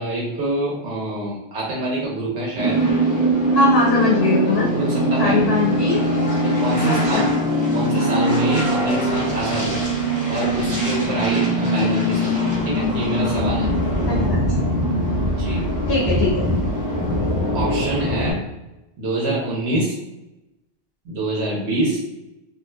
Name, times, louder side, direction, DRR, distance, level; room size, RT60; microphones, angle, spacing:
voice 1, 0.0-2.8 4.6-5.4 6.4-7.4 7.7-9.9 10.3-13.7 15.3-15.7 17.5-18.4 19.0-19.9 21.0-22.0, right 1 dB, 85° right, -4 dB, 1.1 m, -26 dB
sound 1, 2.6-18.3, equal, 20° right, 0.9 m, -21 dB
voice 2, 3.5-4.7 5.2-6.0 6.8-7.3 14.1-14.4 15.9-16.5, left 3 dB, 70° left, -4 dB, 1.0 m, -21 dB
2.5 x 2.3 x 3.1 m, 0.95 s
omnidirectional pair, 1.1 m